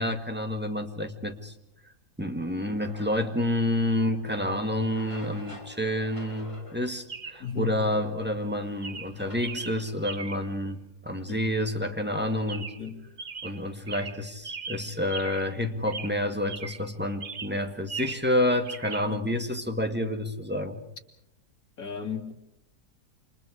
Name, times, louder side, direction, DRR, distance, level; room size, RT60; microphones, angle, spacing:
voice 1, 0.0-1.5 2.2-12.7 13.4-20.8, left 1 dB, 5° right, 5 dB, 1.8 m, -29 dB
sound 1, 2.8-10.2, left 1 dB, 20° left, 4.2 m, -50 dB
Chirp tweet, 4.3-4.5 7.1-7.5 8.2-8.5 8.8-10.5 12.5-12.9 13.2-15.6 15.9-16.9 17.2-18.4 18.6-19.1, right 5 dB, 35° right, 0.8 m, -39 dB
voice 2, 7.4-7.8 11.3-11.4 12.8-13.0 19.1-19.2 21.8-22.3, left 6 dB, 60° left, 2 dB, 3.3 m, -34 dB
29.0 x 26.5 x 4.9 m, 0.79 s
omnidirectional pair, 1.7 m